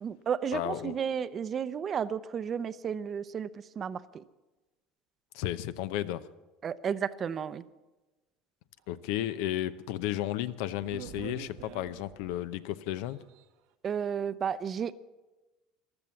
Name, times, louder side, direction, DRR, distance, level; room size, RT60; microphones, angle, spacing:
voice 1, 0.0-4.2 6.6-7.6 13.8-14.9, right 7 dB, 40° right, 15 dB, 0.6 m, -33 dB
voice 2, 0.5-0.9 5.3-6.3 8.9-13.2, left 13 dB, 80° left, 14 dB, 0.7 m, -33 dB
sound 1, 9.7-9.8 10.2-10.3 10.8-12.4 13.0-13.4, right 10 dB, 75° right, 1.1 m, -45 dB
15.0 x 12.0 x 7.1 m, 1.1 s
supercardioid pair, 105°, 0 cm